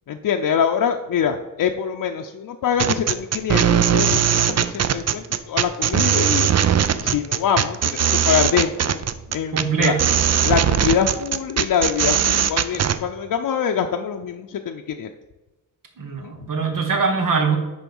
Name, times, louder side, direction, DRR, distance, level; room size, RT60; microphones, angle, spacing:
voice 1, 0.1-6.5 7.0-9.0 9.3-9.9 10.4-15.1 16.1-16.3, left 7 dB, 90° left, 4 dB, 0.5 m, -24 dB
sound 1, 2.8-13.0, right 9 dB, 55° right, 0.4 m, -19 dB
voice 2, 9.5-10.1 16.0-17.6, right 5 dB, 75° right, 3 dB, 1.6 m, -22 dB
10.5 x 3.8 x 5.4 m, 1.1 s
wide cardioid pair, 175°, 33 cm